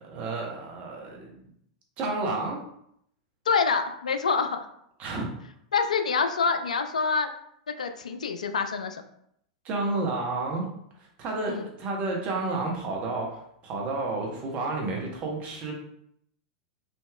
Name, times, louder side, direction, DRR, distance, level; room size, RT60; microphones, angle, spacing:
voice 1, 0.0-1.5 2.0-2.6 5.0-5.3 9.6-10.6 11.0-15.7, right 3 dB, 40° right, -1 dB, 1.0 m, -31 dB
voice 2, 3.5-4.7 5.7-7.3 7.8-9.0 11.5-11.6, left 5 dB, 85° left, 8 dB, 0.3 m, -26 dB
3.4 x 2.8 x 2.3 m, 0.72 s
hypercardioid pair, 100°, 4 cm